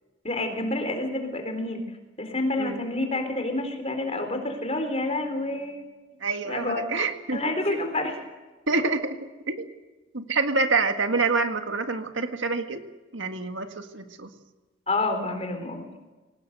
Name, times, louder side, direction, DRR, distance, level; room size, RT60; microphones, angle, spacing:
voice 1, 0.2-1.8 2.2-5.8 6.4-6.8 7.3-8.2 14.9-15.9, left 2 dB, 30° left, 5 dB, 3.9 m, -28 dB
voice 2, 6.2-7.8 8.7-9.7 10.1-12.8 13.1-14.3, right 3 dB, 70° right, 6 dB, 1.8 m, -27 dB
23.5 x 19.0 x 8.1 m, 1.2 s
head